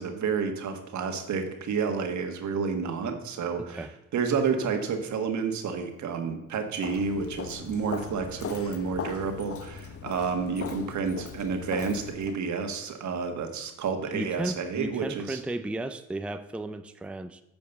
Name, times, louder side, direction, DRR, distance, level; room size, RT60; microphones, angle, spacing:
voice 1, 0.0-3.9 4.1-15.4, right 5 dB, 70° right, 6 dB, 1.6 m, -30 dB
voice 2, 3.6-3.9 14.1-17.4, right 1 dB, 5° right, 9 dB, 0.5 m, -34 dB
Walk footsteps, 6.8-12.4, left 7 dB, 50° left, 0.9 m, -39 dB
9.2 x 5.2 x 7.1 m, 0.91 s
cardioid pair, 90°, 30 cm